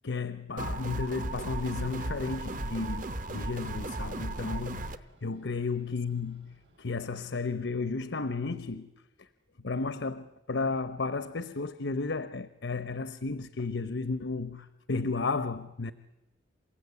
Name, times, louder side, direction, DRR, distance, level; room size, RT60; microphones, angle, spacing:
voice 1, 0.0-4.9 5.2-6.5 6.8-8.9 9.2-9.3 9.6-15.9, left 4 dB, 80° left, 0.9 m, -33 dB
sound 1, 0.6-5.0, right 2 dB, 45° right, 1.0 m, -36 dB
Train, 0.9-7.0, right 1 dB, 80° right, 6.4 m, -62 dB
28.5 x 16.5 x 9.6 m
head